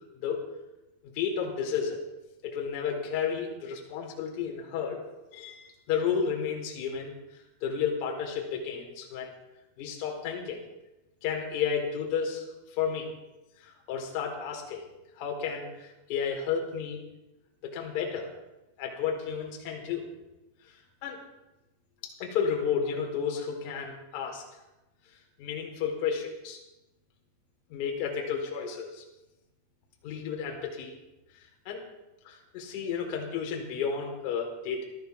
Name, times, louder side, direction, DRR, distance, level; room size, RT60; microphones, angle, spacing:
voice 1, 1.0-2.0 2.4-5.0 5.3-9.3 9.8-10.6 11.2-13.1 13.6-14.8 15.1-17.0 17.6-18.3 18.8-20.0 20.6-21.2 22.0-24.4 25.4-26.6 27.7-29.0 30.0-31.0 31.3-31.8 32.2-34.8, left 7 dB, 50° left, 1 dB, 4.4 m, -32 dB
14.5 x 14.0 x 4.9 m, 1.0 s
supercardioid pair, 140°, 0 cm